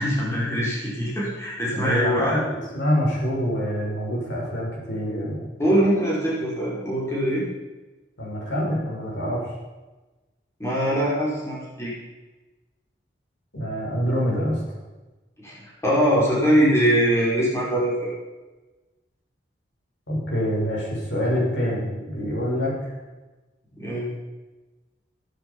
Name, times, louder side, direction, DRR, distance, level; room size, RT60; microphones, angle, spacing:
voice 1, 0.0-2.4 5.6-7.4 10.6-11.9 15.4-18.1 23.8-24.1, equal, 15° left, -7 dB, 5.1 m, -22 dB
voice 2, 1.7-5.7 8.2-9.4 13.5-14.6 20.1-22.9, equal, 85° left, -4 dB, 6.9 m, -26 dB
16.0 x 14.0 x 5.6 m, 1.2 s
head